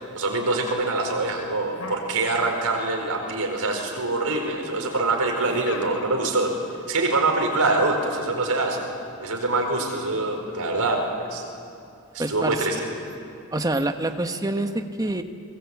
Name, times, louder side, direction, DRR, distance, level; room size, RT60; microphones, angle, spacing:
voice 1, 0.1-8.9 9.2-11.4 12.1-12.9, right 2 dB, 85° right, 2 dB, 4.6 m, -24 dB
sound 1, 1.7-2.7 3.0-3.8 5.4-6.3, left 2 dB, 85° left, 3.7 m, -39 dB
voice 2, 12.2-12.9 13.5-15.2, right 1 dB, 15° right, 7 dB, 1.1 m, -26 dB
28.5 x 20.5 x 8.5 m, 2.6 s
head